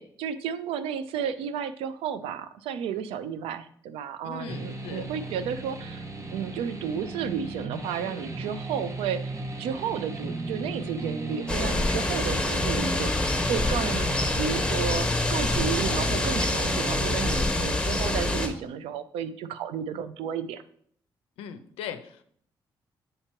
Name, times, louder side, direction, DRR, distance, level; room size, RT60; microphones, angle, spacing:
voice 1, 0.0-20.6, right 8 dB, 85° right, 13 dB, 0.4 m, -32 dB
voice 2, 4.2-5.0 21.4-22.2, left 8 dB, 85° left, 9 dB, 0.5 m, -39 dB
sound 1, 4.5-17.5, right 1 dB, 35° right, 0.9 m, -35 dB
sound 2, 11.5-18.5, left 2 dB, 10° left, 1.3 m, -26 dB
7.6 x 2.9 x 4.3 m, 0.62 s
supercardioid pair, 55°, 9 cm